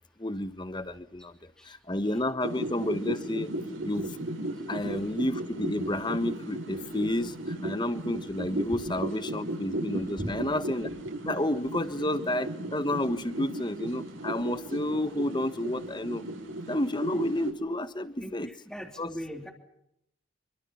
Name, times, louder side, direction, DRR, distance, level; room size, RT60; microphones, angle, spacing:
voice 1, 0.2-1.4 1.6-3.5 3.8-4.2 4.7-10.9 11.2-16.2 16.7-18.5 19.0-19.1, left 1 dB, 20° left, 12 dB, 1.3 m, -30 dB
sound 1, 2.4-17.5, right 1 dB, 65° right, 6.3 m, -36 dB
voice 2, 18.2-19.5, equal, 5° left, 2 dB, 3.3 m, -39 dB
27.0 x 24.5 x 5.9 m, 0.76 s
head